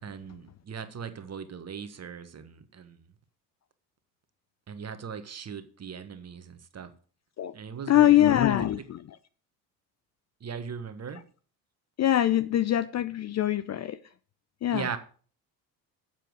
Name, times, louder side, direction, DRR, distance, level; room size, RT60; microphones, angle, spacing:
voice 1, 0.0-3.1 4.7-6.9 7.5-8.9 10.4-11.2 14.7-15.0, right 6 dB, 30° right, 1.4 m, -39 dB
voice 2, 7.9-9.0 12.0-14.0 14.6-14.8, left 12 dB, 35° left, 0.6 m, -23 dB
7.5 x 7.0 x 6.3 m
hypercardioid pair, 65°, 48 cm